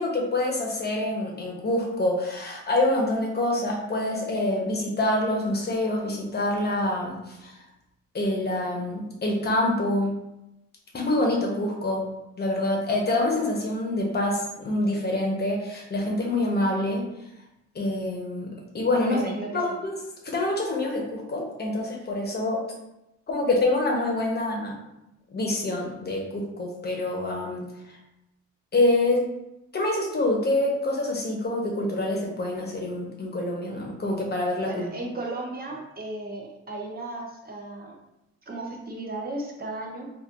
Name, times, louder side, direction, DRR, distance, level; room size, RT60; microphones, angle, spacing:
voice 1, 0.0-7.5 8.1-10.2 10.9-12.0 12.4-17.0 17.7-18.5 18.7-19.1 19.5-19.9 20.2-22.6 23.3-24.7 25.3-27.6 28.7-29.2 29.7-34.9, left 1 dB, 35° left, 0 dB, 1.0 m, -26 dB
voice 2, 18.9-19.6 34.7-37.9 38.5-40.1, right 2 dB, 30° right, -1 dB, 0.8 m, -34 dB
4.2 x 2.6 x 2.5 m, 0.88 s
cardioid pair, 90°, 30 cm